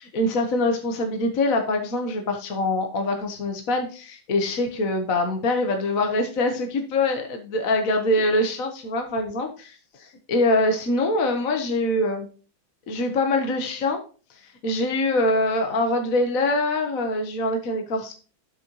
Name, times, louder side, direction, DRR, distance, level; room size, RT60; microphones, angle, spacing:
voice 1, 0.0-12.3 12.9-14.0 14.6-18.1, left 2 dB, 50° left, 4 dB, 1.5 m, -24 dB
11.5 x 6.8 x 3.1 m, 0.36 s
omnidirectional pair, 2.1 m